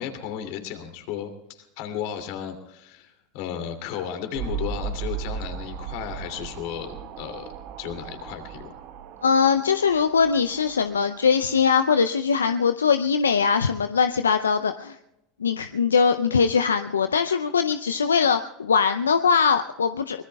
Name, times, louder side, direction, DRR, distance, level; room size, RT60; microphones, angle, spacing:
voice 1, 0.0-7.5 7.8-8.7, left 9 dB, 60° left, 6 dB, 2.7 m, -34 dB
sound 1, 4.3-11.5, right 6 dB, 55° right, 1.3 m, -36 dB
voice 2, 9.2-15.0 15.4-20.2, left 6 dB, 85° left, 9 dB, 0.5 m, -21 dB
24.0 x 20.5 x 2.3 m, 0.89 s
hypercardioid pair, 85°, 0 cm